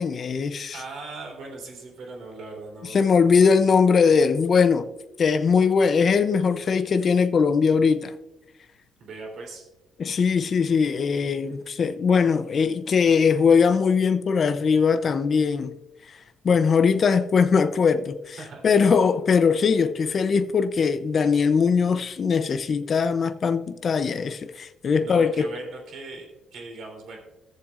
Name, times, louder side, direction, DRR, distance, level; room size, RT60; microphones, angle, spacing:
voice 1, 0.0-0.8 2.9-4.9 5.2-8.1 10.0-15.7 16.1-16.2 16.4-18.4 18.6-25.4, left 5 dB, 50° left, 0.6 m, -21 dB
voice 2, 0.7-3.0 9.0-9.6 18.4-18.6 25.0-27.2, right 3 dB, 70° right, 3.3 m, -39 dB
18.5 x 7.2 x 2.5 m
cardioid pair, 90°, 0 cm